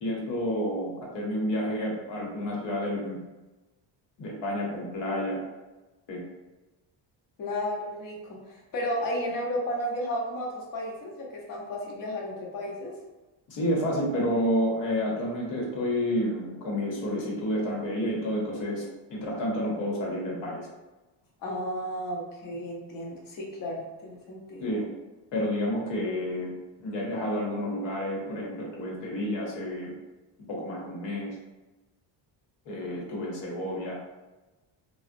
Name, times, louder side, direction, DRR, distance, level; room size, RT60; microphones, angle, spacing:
voice 1, 0.0-3.2 4.2-5.4 6.1-6.2 13.5-20.7 24.6-24.9 25.3-26.5 26.8-29.9 30.5-31.3 32.7-33.9, equal, 70° left, -2 dB, 1.0 m, -30 dB
voice 2, 7.4-12.9 21.4-24.7, equal, 45° left, -2 dB, 0.7 m, -33 dB
3.4 x 2.0 x 2.5 m, 1.1 s
cardioid pair, 160°, 46 cm